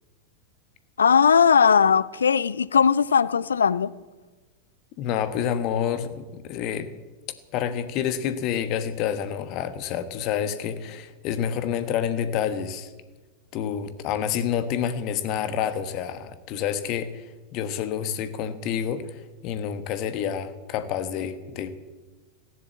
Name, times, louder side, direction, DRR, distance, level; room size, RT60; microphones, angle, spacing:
voice 1, 1.0-3.9, left 6 dB, 70° left, 0.5 m, -19 dB
voice 2, 5.0-6.9 7.5-12.9 13.5-17.3 17.5-21.7, left 9 dB, 40° left, 1.3 m, -28 dB
15.0 x 10.5 x 8.3 m
figure-of-eight pair, 90°, 0 cm